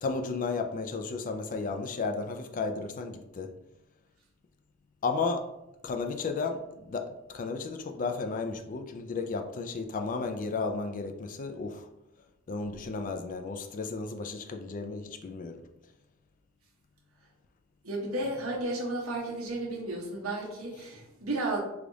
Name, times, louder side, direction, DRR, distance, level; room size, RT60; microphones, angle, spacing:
voice 1, 0.0-3.5 5.0-5.5 5.8-6.6 6.9-11.9 12.5-15.6, left 4 dB, 40° left, 5 dB, 0.4 m, -33 dB
voice 2, 17.8-21.6, right 2 dB, 85° right, -1 dB, 0.9 m, -33 dB
3.3 x 2.4 x 3.9 m, 0.92 s
head